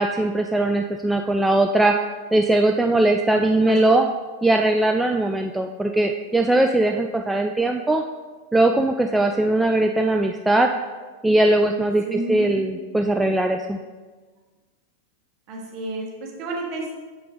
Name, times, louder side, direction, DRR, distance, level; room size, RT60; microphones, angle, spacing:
voice 1, 0.0-1.9 2.3-4.1 4.4-8.0 8.5-10.7 11.2-13.8, right 2 dB, 5° right, 3 dB, 0.3 m, -20 dB
voice 2, 12.0-12.7 15.5-17.0, right 2 dB, 40° right, -1 dB, 1.4 m, -31 dB
7.0 x 5.8 x 3.1 m, 1.4 s
figure-of-eight pair, 90°, 0 cm